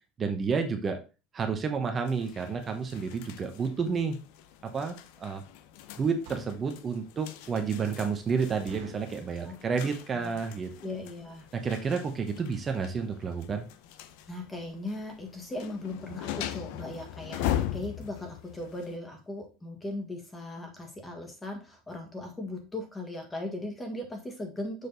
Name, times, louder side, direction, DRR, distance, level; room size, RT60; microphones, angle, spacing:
voice 1, 0.2-1.0 1.3-4.2 4.6-5.4 6.0-10.7 11.5-13.7, right 5 dB, 25° right, 5 dB, 1.0 m, -30 dB
sound 1, 2.1-19.0, left 11 dB, 75° left, 0.7 m, -40 dB
sound 2, 4.4-4.6 5.1-5.3 6.0-6.7 7.2-7.3 7.6-7.7 8.1-8.2 8.7-9.2 9.8-10.1 10.3-10.4 10.6-10.9 11.5-11.6 11.8-11.9 12.3-12.4 12.6-12.7, right 5 dB, 90° right, 1.8 m, -51 dB
voice 2, 10.8-11.5 14.3-24.9, left 1 dB, 10° left, 3 dB, 1.7 m, -38 dB
6.8 x 4.9 x 4.0 m, 0.31 s
cardioid pair, 155°, 0 cm